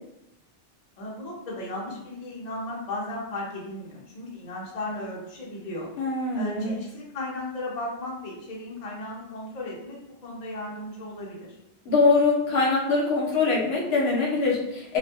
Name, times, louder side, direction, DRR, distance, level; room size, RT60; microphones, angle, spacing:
voice 1, 1.0-5.9 6.3-10.0 10.2-11.5, left 1 dB, 45° left, -3 dB, 0.6 m, -35 dB
voice 2, 6.0-6.7 11.8-15.0, left 3 dB, 65° left, -4 dB, 0.9 m, -23 dB
2.4 x 2.1 x 2.7 m, 0.82 s
omnidirectional pair, 1.2 m